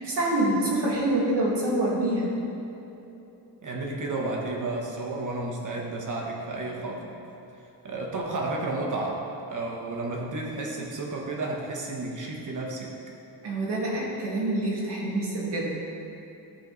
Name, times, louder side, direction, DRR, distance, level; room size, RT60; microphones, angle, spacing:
voice 1, 0.0-2.3 13.4-15.7, right 1 dB, 80° right, -5 dB, 2.1 m, -26 dB
voice 2, 3.6-7.1 7.8-9.2 9.5-12.9, right 2 dB, 45° right, -1 dB, 1.3 m, -32 dB
14.0 x 5.0 x 4.0 m, 2.9 s
wide cardioid pair, 175°, 41 cm